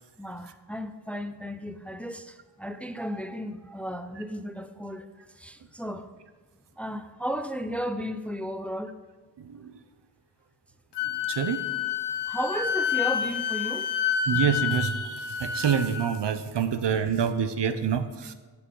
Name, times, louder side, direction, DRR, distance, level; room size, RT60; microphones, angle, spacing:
voice 1, 0.2-6.1 6.8-8.9 12.3-13.9, equal, 5° left, 0.5 m, -34 dB
Wind instrument woodwind instrument, 10.9-16.1, left 8 dB, 80° left, 1.1 m, -29 dB
voice 2, 11.3-11.6 14.3-18.3, right 7 dB, 90° right, 0.9 m, -27 dB
14.5 x 8.6 x 3.9 m
wide cardioid pair, 130°, 41 cm